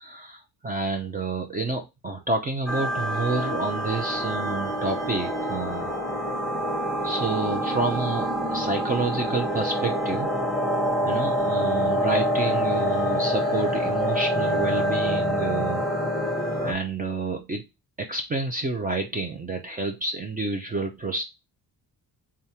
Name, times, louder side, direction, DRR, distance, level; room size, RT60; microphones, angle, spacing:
voice 1, 0.0-5.9 7.0-10.3 11.0-15.8 16.6-17.6 18.0-21.2, right 3 dB, 20° right, 0.6 m, -29 dB
sound 1, 2.7-16.7, equal, ahead, 1.0 m, -26 dB
3.5 x 3.4 x 2.8 m
cardioid pair, 125°, 39 cm